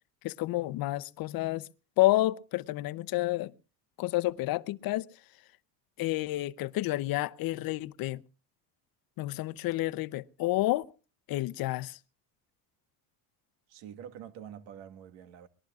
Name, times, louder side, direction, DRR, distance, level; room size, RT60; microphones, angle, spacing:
voice 1, 0.2-1.6 2.0-3.5 4.0-5.1 6.0-8.2 9.2-10.8 11.3-12.0, left 17 dB, 55° left, 0.7 m, -29 dB
voice 2, 13.7-15.5, right 9 dB, 75° right, 1.7 m, -46 dB
23.5 x 19.5 x 2.4 m
cardioid pair, 120°, 44 cm